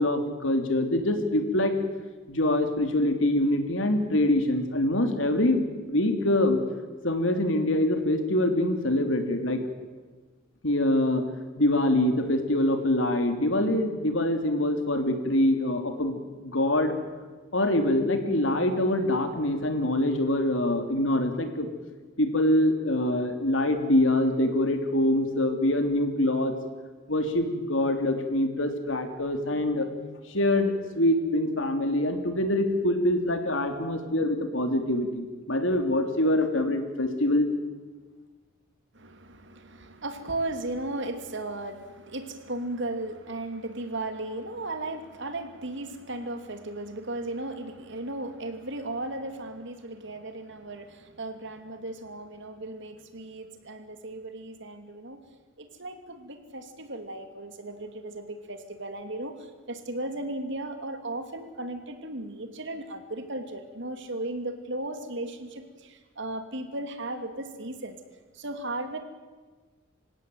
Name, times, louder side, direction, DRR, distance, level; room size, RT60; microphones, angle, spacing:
voice 1, 0.0-1.7 2.3-6.6 7.0-9.6 10.6-11.2 11.6-17.0 17.5-21.7 22.2-26.5 27.1-29.9 30.3-37.5, left 1 dB, 65° left, 6 dB, 3.4 m, -25 dB
voice 2, 38.9-55.2 55.6-68.0 68.3-69.0, right 2 dB, 65° right, 7 dB, 2.9 m, -36 dB
27.0 x 16.5 x 9.5 m, 1.4 s
head